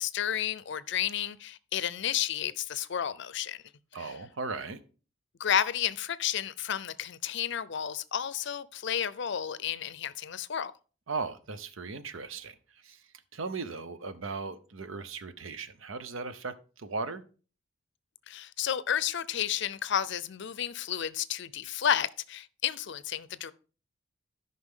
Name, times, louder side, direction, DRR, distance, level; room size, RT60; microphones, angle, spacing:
voice 1, 0.0-3.6 4.0-4.1 5.4-10.7 18.3-23.5, left 9 dB, 60° left, 0.5 m, -31 dB
voice 2, 3.9-4.8 11.1-13.0 13.3-17.2, right 4 dB, 85° right, 0.8 m, -37 dB
13.0 x 5.6 x 3.7 m
head